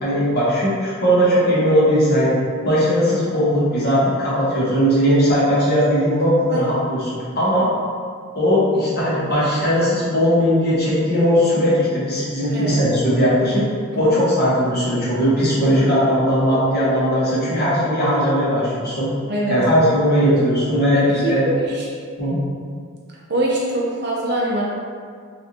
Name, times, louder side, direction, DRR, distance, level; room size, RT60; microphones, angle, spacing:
voice 1, 0.0-2.3 2.6-7.0 7.3-7.7 8.3-13.6 13.9-19.1 19.5-21.4 22.2-22.4, equal, 45° left, -9 dB, 1.1 m, -18 dB
voice 2, 12.5-12.8 13.9-14.1 15.6-16.2 19.3-19.6 20.9-21.9 23.3-24.7, right 1 dB, 50° right, -5 dB, 0.6 m, -24 dB
3.3 x 2.5 x 2.8 m, 2.1 s
head